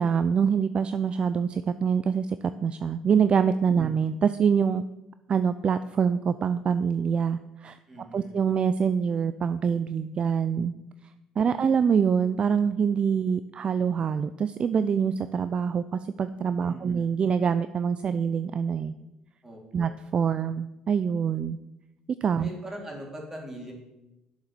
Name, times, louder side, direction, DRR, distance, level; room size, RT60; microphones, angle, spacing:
voice 1, 0.0-2.4 2.6-4.8 5.3-7.8 8.1-10.7 11.4-18.9 19.7-21.6 22.2-22.5, right 7 dB, 45° right, 12 dB, 0.4 m, -25 dB
voice 2, 3.7-4.0 7.9-8.3 11.4-11.6 16.6-17.1 19.4-19.9 22.4-23.7, right 1 dB, 20° right, -1 dB, 3.4 m, -42 dB
7.4 x 7.3 x 6.7 m, 0.95 s
supercardioid pair, 70°, 3 cm